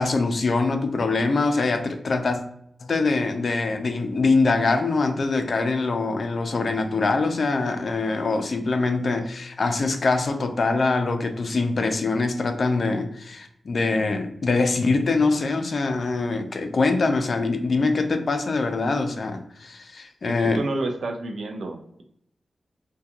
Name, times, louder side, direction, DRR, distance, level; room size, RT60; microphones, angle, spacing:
voice 1, 0.0-2.4 2.8-20.6, left 3 dB, 60° left, 6 dB, 0.4 m, -23 dB
voice 2, 20.3-22.0, right 2 dB, 75° right, 4 dB, 0.4 m, -30 dB
2.8 x 2.2 x 2.3 m, 0.71 s
wide cardioid pair, 85°, 0 cm